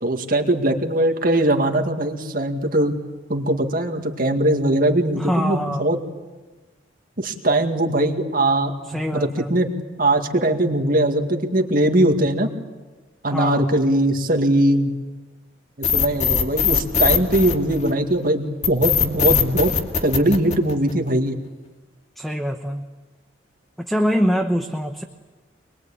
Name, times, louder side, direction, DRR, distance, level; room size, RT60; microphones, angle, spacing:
voice 1, 0.0-3.0 3.3-6.0 7.2-9.7 10.0-12.5 13.2-14.9 15.8-19.7 20.0-21.4, right 1 dB, 50° right, 4 dB, 2.1 m, -20 dB
voice 2, 5.1-5.9 8.9-9.5 13.3-13.8 22.2-22.9 23.8-25.0, equal, ahead, 5 dB, 1.0 m, -24 dB
sound 1, 15.8-18.1 18.6-21.1, left 7 dB, 40° left, 2.4 m, -20 dB
24.5 x 22.0 x 8.7 m, 1.2 s
head